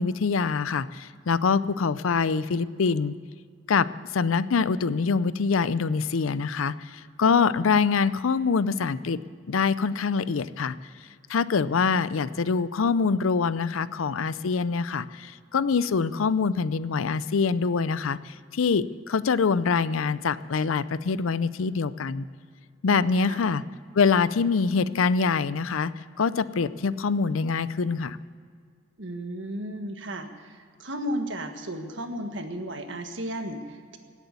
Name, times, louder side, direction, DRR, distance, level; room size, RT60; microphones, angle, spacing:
voice 1, 0.0-3.1 3.7-3.9 4.1-9.2 9.5-10.7 11.3-22.3 22.8-23.6 23.9-25.9 26.2-28.2, left 5 dB, 80° left, 16 dB, 0.5 m, -24 dB
voice 2, 29.0-34.0, equal, 65° right, 6 dB, 1.5 m, -34 dB
18.0 x 8.3 x 9.4 m, 2.1 s
head